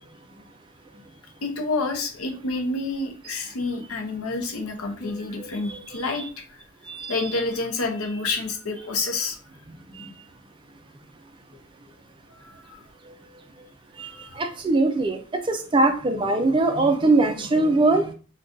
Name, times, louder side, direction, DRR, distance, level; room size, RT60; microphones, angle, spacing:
voice 1, 1.4-6.4 7.1-9.4 12.3-12.8 14.0-14.4, left 3 dB, 90° left, 5 dB, 0.6 m, -29 dB
voice 2, 5.4-6.1 6.9-7.2 9.9-10.1 14.0-15.2 15.4-18.1, right 2 dB, 25° right, 5 dB, 0.3 m, -22 dB
2.5 x 2.3 x 3.6 m, 0.37 s
head